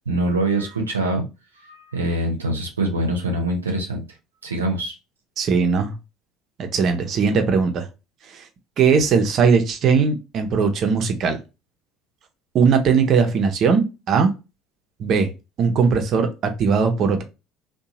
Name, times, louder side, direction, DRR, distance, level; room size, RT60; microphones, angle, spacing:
voice 1, 0.1-1.2 1.6-4.0 4.4-4.9, right 1 dB, 90° right, 2 dB, 0.6 m, -24 dB
voice 2, 5.4-5.9 6.7-7.9 8.3-8.5 8.8-11.4 12.5-14.3 15.0-15.3 15.6-17.2, right 5 dB, 50° right, 6 dB, 0.6 m, -19 dB
2.7 x 2.2 x 2.7 m, 0.27 s
hypercardioid pair, 60°, 0 cm